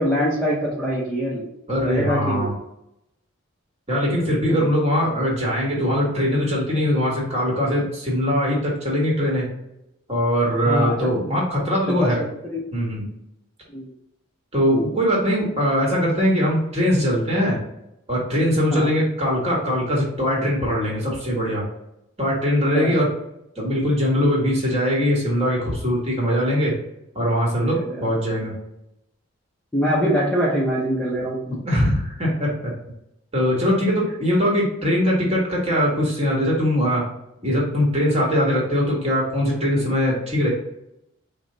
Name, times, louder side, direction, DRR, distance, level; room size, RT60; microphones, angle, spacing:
voice 1, 0.0-1.5 1.8-2.5 4.5-4.7 10.6-11.4 12.0-12.1 12.5-12.6 13.7-13.9 18.7-18.9 22.6-22.9 27.7-28.1 29.7-31.4, equal, 5° left, -6 dB, 0.6 m, -24 dB
voice 2, 1.7-2.5 3.9-9.4 10.1-12.2 12.7-13.0 14.5-17.6 18.1-21.6 22.2-23.1 23.5-26.7 27.1-28.5 31.7-32.7 33.3-37.0 37.4-40.5, equal, 30° right, -3 dB, 1.4 m, -21 dB
4.8 x 2.1 x 3.8 m, 0.84 s
head